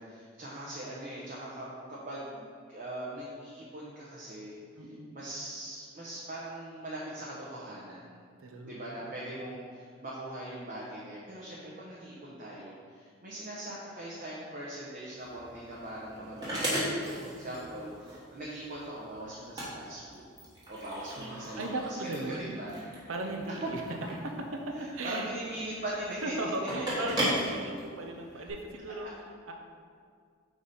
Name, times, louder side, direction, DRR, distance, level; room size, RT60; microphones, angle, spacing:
voice 1, 0.0-4.6 5.1-8.1 8.6-20.2 20.7-22.7 24.7-26.4 28.3-28.4, right 1 dB, 40° right, -6 dB, 0.9 m, -41 dB
voice 2, 4.8-5.1 8.4-9.5 17.0-17.8 21.2-22.6 23.1-23.8 24.9-25.3 26.2-29.1 29.5-29.6, right 2 dB, 80° right, 2 dB, 0.7 m, -37 dB
sound 1, 15.2-28.5, equal, 20° right, 1.3 m, -37 dB
4.8 x 4.1 x 5.4 m, 2.2 s
head